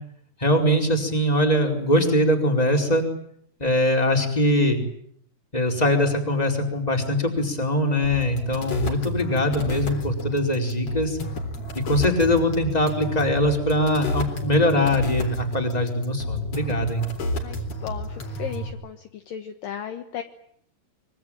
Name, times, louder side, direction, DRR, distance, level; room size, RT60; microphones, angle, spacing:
voice 1, 0.4-3.0 3.6-4.8 5.5-11.2 11.7-17.0, left 1 dB, 10° left, 3 dB, 4.4 m, -22 dB
sound 1, 8.0-18.7, equal, 40° left, 4.7 m, -31 dB
voice 2, 17.4-20.2, left 9 dB, 65° left, 7 dB, 2.6 m, -35 dB
25.0 x 24.0 x 9.1 m, 0.68 s
omnidirectional pair, 4.7 m